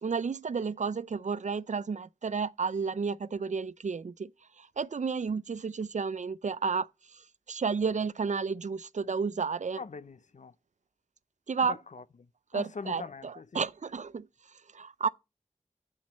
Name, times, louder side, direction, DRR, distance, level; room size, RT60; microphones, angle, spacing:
voice 1, 0.0-4.3 4.6-9.8 11.5-11.8 12.5-14.3 14.7-15.1, right 5 dB, 80° right, 0.4 m, -32 dB
voice 2, 9.8-10.5 11.7-12.0 12.5-13.6, left 5 dB, 90° left, 0.5 m, -42 dB
7.8 x 7.3 x 4.1 m
wide cardioid pair, 45°, 12 cm